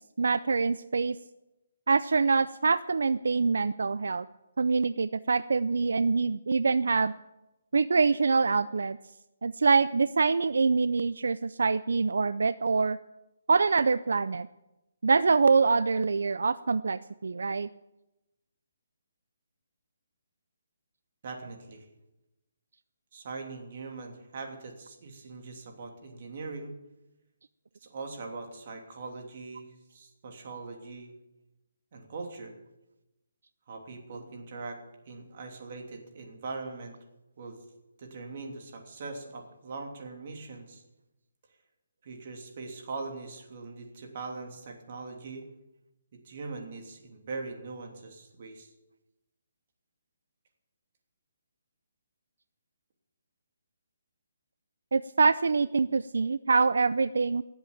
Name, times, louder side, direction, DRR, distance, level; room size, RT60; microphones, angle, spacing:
voice 1, 0.2-1.2 1.9-4.3 4.6-7.1 7.7-9.0 9.4-13.0 13.5-14.5 15.0-17.7 54.9-57.4, right 4 dB, 80° right, 15 dB, 0.4 m, -25 dB
voice 2, 21.2-21.9 23.1-26.8 27.8-31.1 31.9-32.6 33.7-37.0 37.4-37.6 38.0-40.8 42.0-45.5 46.1-48.7, right 3 dB, 40° right, 2 dB, 2.9 m, -41 dB
17.5 x 8.0 x 8.7 m, 0.96 s
hypercardioid pair, 170°, 0 cm